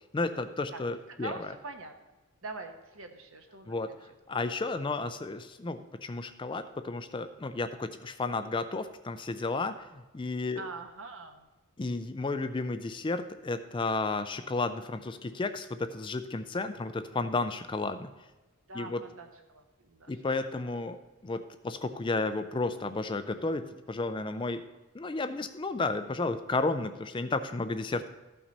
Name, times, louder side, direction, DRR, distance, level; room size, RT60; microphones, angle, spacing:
voice 1, 0.1-1.5 3.7-10.6 11.8-18.1 18.7-19.0 20.1-21.0 21.2-23.6 23.9-24.6 24.9-28.1, left 3 dB, 20° left, 10 dB, 0.4 m, -32 dB
voice 2, 1.2-1.9 2.4-3.8 10.6-11.5 18.7-20.4, right 3 dB, 65° right, 5 dB, 1.1 m, -43 dB
14.0 x 5.9 x 4.1 m, 1.1 s
head